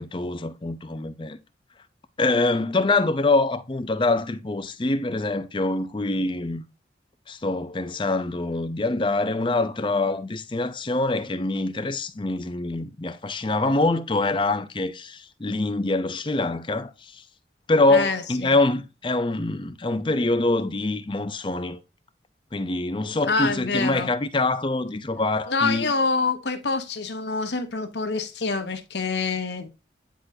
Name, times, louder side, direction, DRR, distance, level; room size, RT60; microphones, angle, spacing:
voice 1, 0.0-1.4 2.2-6.6 7.3-17.2 17.7-21.8 22.5-25.9, left 2 dB, 25° left, 0.5 m, -25 dB
voice 2, 17.9-18.6 23.2-24.1 25.5-29.7, left 4 dB, 75° left, 1.0 m, -26 dB
10.0 x 3.8 x 2.7 m
head